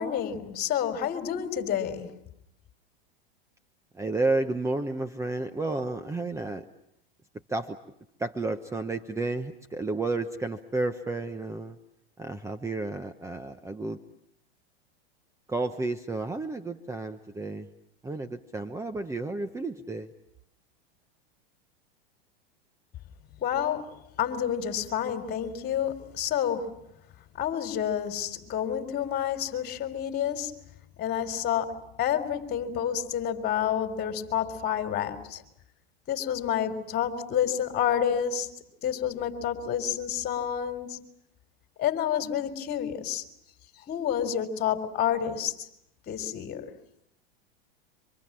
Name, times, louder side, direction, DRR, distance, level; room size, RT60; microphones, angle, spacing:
voice 1, 0.0-2.2 23.4-23.9 24.2-26.8 27.4-30.5 31.0-35.4 36.1-38.5 38.8-41.0 41.8-43.2 43.9-45.5 46.1-46.7, left 9 dB, 30° left, 3.8 m, -29 dB
voice 2, 3.9-6.6 7.5-7.8 8.2-11.8 12.2-14.0 15.5-17.7 18.0-20.1, right 2 dB, 10° right, 1.0 m, -31 dB
27.0 x 26.0 x 7.5 m
hypercardioid pair, 120°, 31 cm